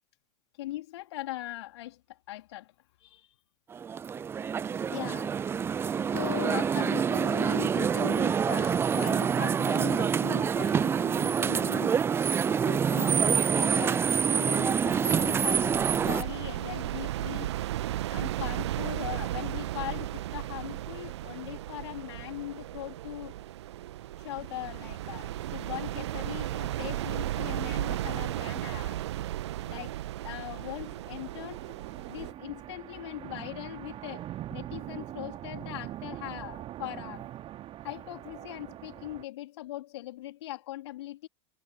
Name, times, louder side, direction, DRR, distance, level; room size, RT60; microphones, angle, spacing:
voice 1, 0.6-2.7 3.0-3.3 4.9-5.4 6.1-12.0 12.5-17.5 18.1-23.3 24.2-29.0 29.6-29.9 30.2-31.7 32.1-37.2 37.8-41.3, left 15 dB, 60° left, 4.1 m, -40 dB
sound 1, 3.7-16.2, right 7 dB, 15° right, 0.3 m, -26 dB
sound 2, 14.5-32.3, right 14 dB, 60° right, 1.5 m, -35 dB
sound 3, 30.9-39.2, right 13 dB, 35° right, 2.8 m, -42 dB
figure-of-eight pair, 80°, 16 cm